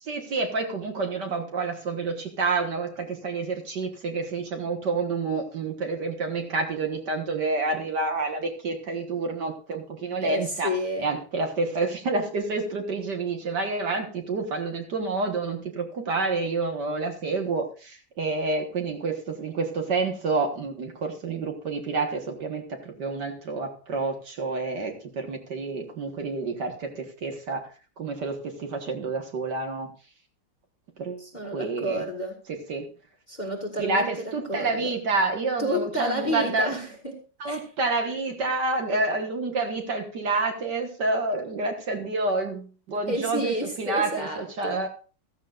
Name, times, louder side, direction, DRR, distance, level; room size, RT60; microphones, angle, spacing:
voice 1, 0.0-10.7 11.0-27.7 28.0-29.9 31.0-31.2 31.5-32.0 32.7-32.9 33.8-36.8 37.4-44.9, right 3 dB, 55° right, 4 dB, 1.9 m, -28 dB
voice 2, 10.2-11.1 31.2-32.4 33.3-34.9 35.6-37.2 37.4-37.6 43.1-44.8, equal, 20° left, 2 dB, 1.7 m, -30 dB
14.5 x 13.5 x 2.5 m, 0.35 s
omnidirectional pair, 2.4 m